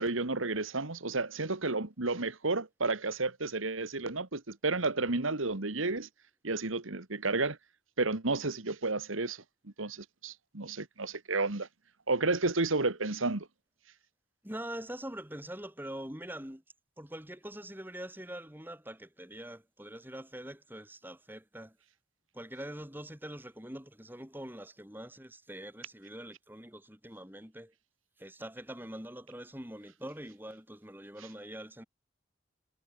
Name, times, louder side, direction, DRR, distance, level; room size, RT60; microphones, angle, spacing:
voice 1, 0.0-6.1 6.4-7.6 8.0-11.7 12.1-13.5, right 3 dB, 85° right, 2.0 m, -31 dB
voice 2, 14.4-16.6 17.0-21.8 22.3-27.7 28.2-31.8, right 1 dB, 10° right, 4.4 m, -44 dB
head